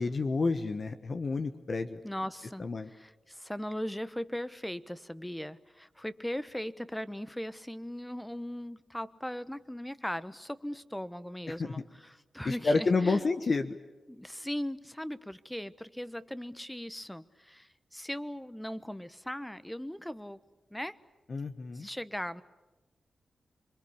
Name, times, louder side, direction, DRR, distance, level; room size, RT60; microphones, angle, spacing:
voice 1, 0.0-2.0 2.6-2.9 11.5-11.7 12.4-13.8 21.3-21.9, left 3 dB, 55° left, 8 dB, 1.3 m, -29 dB
voice 2, 2.0-13.2 14.1-20.4 20.7-21.0 21.7-22.4, equal, 5° left, 14 dB, 1.1 m, -39 dB
26.5 x 22.5 x 8.6 m, 1.1 s
cardioid pair, 50°, 0 cm